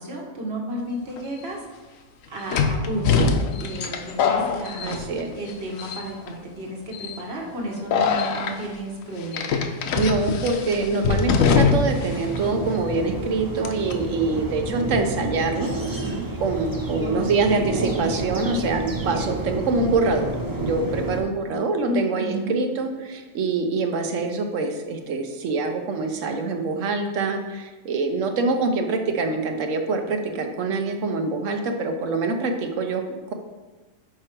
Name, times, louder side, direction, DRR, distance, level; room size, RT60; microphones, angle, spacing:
voice 1, 0.0-1.6 2.3-3.3 3.6-5.0 5.3-9.5 17.0-18.9 21.8-22.5, right 1 dB, 55° right, -1 dB, 1.4 m, -32 dB
sound 1, 1.2-1.3 2.5-5.5 5.8-6.3 6.9-7.2 7.9-8.5 9.3-12.1 12.3-12.4 13.6-13.9, left 5 dB, 90° left, 1.0 m, -22 dB
voice 2, 4.8-5.3 10.0-20.3 20.6-33.0, right 3 dB, 75° right, 5 dB, 1.1 m, -25 dB
sound 2, 11.8-21.2, right 2 dB, 25° right, 0.5 m, -30 dB
6.0 x 4.9 x 4.4 m, 1.3 s
omnidirectional pair, 1.3 m